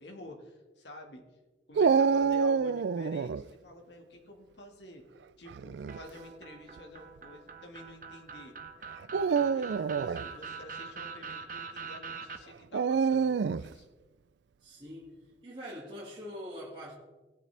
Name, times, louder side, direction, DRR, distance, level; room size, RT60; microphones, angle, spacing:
voice 1, 0.0-1.2 1.7-5.1 5.4-8.6 9.2-13.9, left 1 dB, 75° left, 1.9 m, -49 dB
Dog, 1.8-3.4 5.5-6.0 6.8-6.9 9.0-10.3 12.7-13.7, right 5 dB, 70° right, 0.4 m, -27 dB
sound 1, 5.9-12.4, right 5 dB, 50° right, 1.1 m, -43 dB
voice 2, 14.6-15.2 15.4-16.9, equal, 30° right, 2.2 m, -43 dB
19.5 x 8.5 x 3.4 m
head